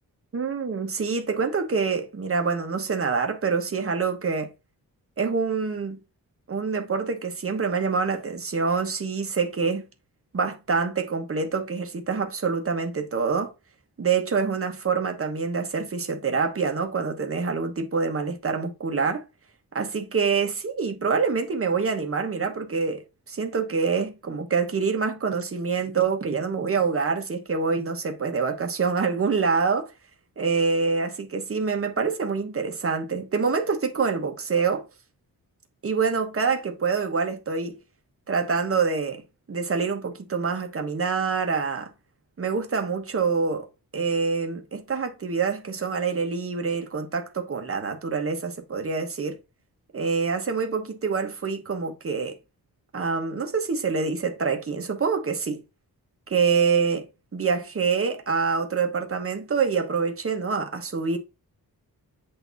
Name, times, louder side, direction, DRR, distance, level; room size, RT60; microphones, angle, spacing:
voice 1, 0.3-4.5 5.2-6.0 6.5-9.8 10.3-13.5 14.0-19.2 19.7-29.9 30.4-34.9 35.8-37.8 38.3-39.2 39.5-41.9 42.4-43.7 43.9-49.4 49.9-52.4 52.9-55.6 56.3-57.0 57.3-61.2, right 5 dB, 35° right, 1.1 m, -26 dB
8.4 x 2.9 x 4.0 m
wide cardioid pair, 170°, 37 cm